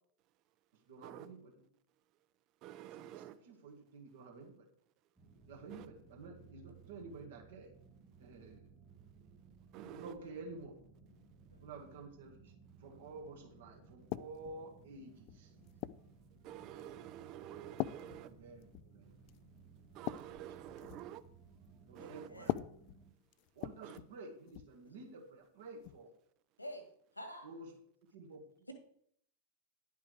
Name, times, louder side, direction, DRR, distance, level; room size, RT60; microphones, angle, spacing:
voice 1, 0.9-1.7 2.9-4.7 5.5-7.7 8.2-8.7 9.7-10.8 11.5-12.5 12.8-15.5 17.9-19.1 20.3-20.6 21.0-21.1 21.8-22.6 23.5-26.1 27.4-27.7 28.1-28.4, right 3 dB, 60° right, 2.0 m, -51 dB
voice 2, 2.6-3.3 5.7-5.9 9.7-10.1 16.4-18.3 19.9-21.2 21.9-22.3 23.8-24.0, right 12 dB, 40° right, 0.6 m, -49 dB
sound 1, 5.2-23.1, right 5 dB, 15° right, 2.0 m, -61 dB
sound 2, 14.1-14.6 15.3-16.1 16.8-17.1 17.8-19.0 19.3-19.4 19.8-21.1 22.4-24.2 24.5-24.8 25.8-26.0, left 17 dB, 45° left, 0.3 m, -42 dB
voice 3, 22.0-22.5 26.6-26.8 27.1-27.5, equal, 85° left, 1.8 m, -49 dB
10.5 x 5.9 x 4.8 m
figure-of-eight pair, 90°, 0 cm